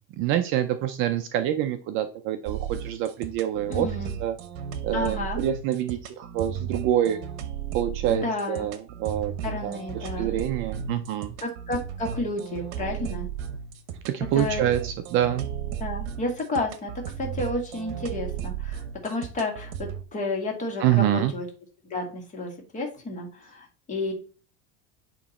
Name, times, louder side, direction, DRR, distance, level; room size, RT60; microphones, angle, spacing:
voice 1, 0.2-3.9 4.2-4.4 4.8-7.2 7.7-9.3 9.6-11.4 14.1-15.4 20.8-21.3, right 11 dB, 40° right, 8 dB, 0.5 m, -26 dB
sound 1, 2.5-20.0, right 8 dB, 65° right, 0.9 m, -35 dB
voice 2, 3.7-4.1 4.9-5.4 8.1-8.7 9.4-10.4 11.4-13.3 14.4-14.7 15.8-16.9 17.2-21.5 21.9-24.1, left 2 dB, 25° left, 1 dB, 1.9 m, -31 dB
8.5 x 3.0 x 4.2 m, 0.37 s
supercardioid pair, 160°, 32 cm